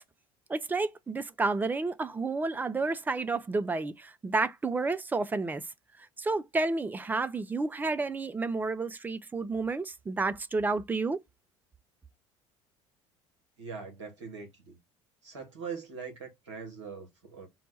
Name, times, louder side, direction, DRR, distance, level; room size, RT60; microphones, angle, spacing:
voice 1, 0.5-5.6 6.2-11.2, right 3 dB, 10° right, 0.3 m, -30 dB
voice 2, 13.6-14.8 15.2-17.5, right 5 dB, 70° right, 1.3 m, -42 dB
4.0 x 2.2 x 4.0 m
figure-of-eight pair, 65°, 16 cm